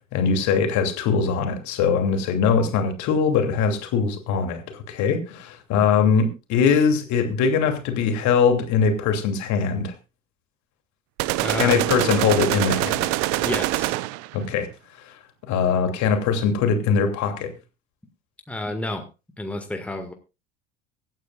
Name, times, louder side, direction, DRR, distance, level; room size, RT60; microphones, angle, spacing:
voice 1, 0.1-9.9 11.5-13.1 14.3-14.7 15.5-17.5, left 6 dB, 50° left, 2.8 m, -21 dB
sound 1, 11.2-14.3, right 19 dB, 50° right, 0.7 m, -24 dB
voice 2, 11.4-11.9 13.4-13.9 18.5-19.0 19.4-20.1, left 1 dB, 5° left, 1.8 m, -30 dB
24.0 x 9.3 x 2.4 m
figure-of-eight pair, 70°, 37 cm